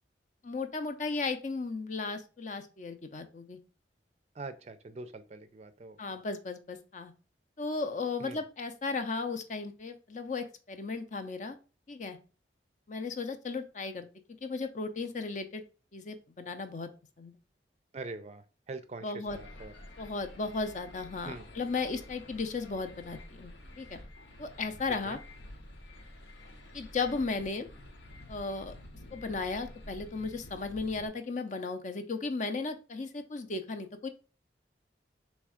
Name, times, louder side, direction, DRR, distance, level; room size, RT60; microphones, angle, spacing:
voice 1, 0.4-3.6 6.0-7.1 7.6-11.6 11.9-12.2 12.9-14.1 14.4-15.6 15.9-16.9 17.2-17.3 19.0-19.4 20.0-24.0 24.4-25.2 26.7-27.7 28.3-28.8 29.1-34.1, left 4 dB, 45° left, 9 dB, 0.5 m, -35 dB
voice 2, 4.3-6.0 8.2-8.4 17.9-19.7 21.2-21.5 25.0-25.2, right 3 dB, 40° right, 11 dB, 0.4 m, -43 dB
sound 1, 19.3-31.1, left 1 dB, 90° left, 1.0 m, -50 dB
3.5 x 3.1 x 4.8 m, 0.35 s
head